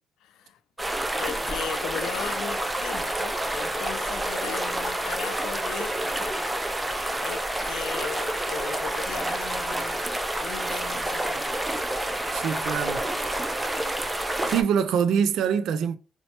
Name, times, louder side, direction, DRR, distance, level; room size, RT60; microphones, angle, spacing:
voice 1, 0.2-0.6 1.2-6.4 7.2-10.1 10.4-11.5, left 9 dB, 85° left, 0.3 m, -37 dB
sound 1, 0.8-14.6, right 1 dB, 15° right, 0.5 m, -29 dB
voice 2, 12.3-13.1 14.5-16.0, right 7 dB, 80° right, 0.3 m, -24 dB
4.0 x 2.1 x 2.9 m
cardioid pair, 90°, 0 cm